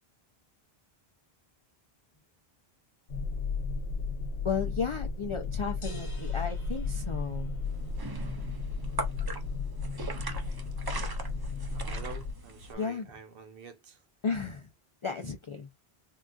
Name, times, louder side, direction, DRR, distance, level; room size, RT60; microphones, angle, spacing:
sound 1, 3.1-12.3, left 4 dB, 80° left, 0.9 m, -34 dB
voice 1, 4.4-7.6 12.8-13.1 14.2-14.7 15.0-15.7, left 5 dB, 55° left, 0.3 m, -34 dB
sound 2, 5.8-7.9, equal, 35° left, 0.8 m, -50 dB
sound 3, 7.6-12.7, right 2 dB, 30° right, 0.5 m, -40 dB
voice 2, 11.7-14.0 15.2-15.3, right 5 dB, 65° right, 0.9 m, -47 dB
3.7 x 2.3 x 2.3 m
omnidirectional pair, 1.0 m